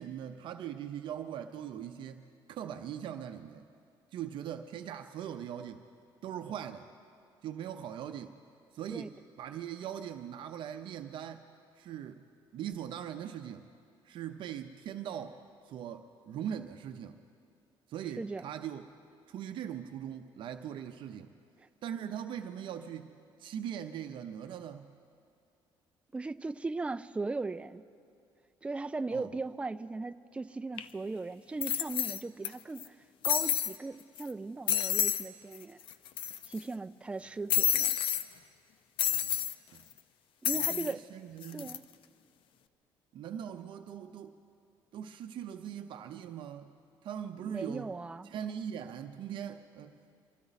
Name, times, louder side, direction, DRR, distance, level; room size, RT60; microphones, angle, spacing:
voice 1, 0.0-3.7 4.1-5.8 6.2-6.9 7.4-8.4 8.7-11.5 11.8-12.2 12.5-13.7 14.0-15.4 15.7-17.2 17.9-18.8 19.3-21.3 21.8-24.9 29.1-29.3 39.1-39.4 39.7-39.9 40.5-41.7 43.1-44.4 44.9-46.7 47.0-47.9 48.2-49.9, right 9 dB, 60° right, 7 dB, 0.6 m, -41 dB
voice 2, 26.1-27.8 28.6-33.0 33.2-35.8 36.5-38.0 40.4-41.1 41.5-41.8 47.4-48.3, right 3 dB, 10° right, 11 dB, 0.3 m, -38 dB
sound 1, 30.8-30.9 31.6-32.5 32.8-32.9 33.2-33.8 34.2-34.3 34.7-35.3 35.5-35.6 35.9-36.6 37.5-38.2 39.0-39.5 40.4-40.9 41.4-41.8, left 9 dB, 65° left, 0.6 m, -29 dB
24.5 x 13.5 x 4.0 m, 2.4 s
cardioid pair, 125°, 9 cm